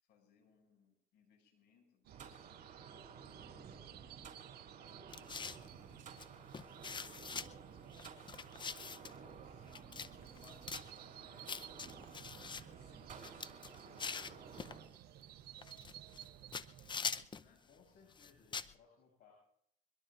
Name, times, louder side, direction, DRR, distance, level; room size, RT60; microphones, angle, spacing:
voice 1, 0.0-2.6 2.9-3.1 3.5-5.4 6.2-8.0 9.1-11.6 12.3-14.9 17.3-17.7, left 6 dB, 90° left, 3 dB, 7.2 m, -70 dB
sound 1, 2.0-17.3, right 13 dB, 70° right, 0.6 m, -57 dB
sound 2, 2.1-14.9, right 5 dB, 45° right, 4.7 m, -54 dB
sound 3, 5.1-5.7 6.2-6.3 6.5-7.5 7.9-9.2 9.7-10.1 10.4-10.9 11.5-12.6 13.1-14.8 15.6-16.3 16.5-17.5 18.1-18.7, left 5 dB, 25° left, 0.7 m, -43 dB
voice 2, 17.6-19.3, left 5 dB, 70° left, -1 dB, 7.1 m, -65 dB
23.0 x 22.5 x 2.6 m, 0.71 s
cardioid pair, 110°, 17 cm